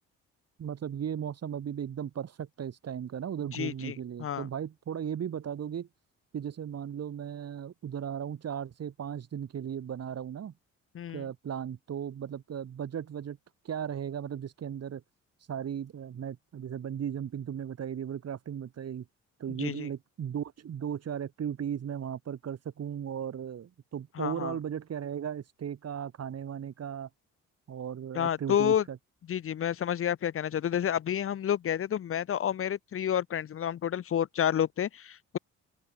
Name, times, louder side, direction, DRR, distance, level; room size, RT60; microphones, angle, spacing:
voice 1, 0.6-5.9 6.3-10.5 11.1-13.4 13.6-15.0 15.4-19.1 19.4-27.1 27.7-29.0, right 9 dB, 55° right, 3.2 m, -36 dB
voice 2, 3.5-4.5 10.9-11.3 19.6-19.9 24.2-24.5 28.1-28.8 29.3-35.4, left 9 dB, 45° left, 0.7 m, -30 dB
open air
cardioid pair, 90°, 30 cm